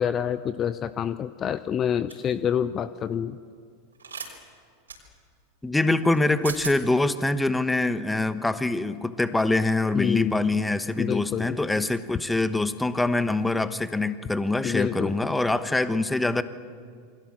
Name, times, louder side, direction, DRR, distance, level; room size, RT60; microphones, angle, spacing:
voice 1, 0.0-3.4 9.9-10.5 11.0-11.6 14.6-15.1, left 8 dB, 30° left, 14 dB, 0.7 m, -27 dB
sound 1, 2.1-2.3 4.0-4.3 4.9-5.0 6.1-6.2 6.4-6.8, right 5 dB, 85° right, 4.1 m, -36 dB
voice 2, 5.6-16.4, left 2 dB, 5° left, 12 dB, 1.2 m, -24 dB
28.0 x 22.0 x 7.7 m, 2.1 s
hypercardioid pair, 90°, 0 cm